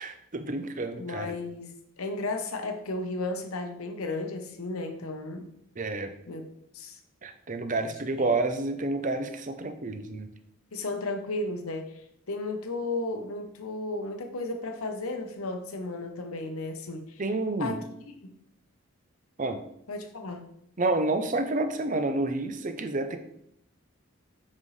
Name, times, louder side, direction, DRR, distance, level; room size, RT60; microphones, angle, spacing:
voice 1, 0.0-1.4 5.8-6.1 7.2-10.3 17.2-17.8 19.4-19.6 20.8-23.2, right 2 dB, 35° right, 8 dB, 0.6 m, -29 dB
voice 2, 1.0-5.5 6.3-6.4 6.7-7.0 10.7-11.9 12.3-17.2 17.6-17.8 18.2-18.3 19.9-20.5, left 2 dB, 80° left, 6 dB, 0.9 m, -34 dB
7.4 x 5.3 x 3.2 m, 0.74 s
head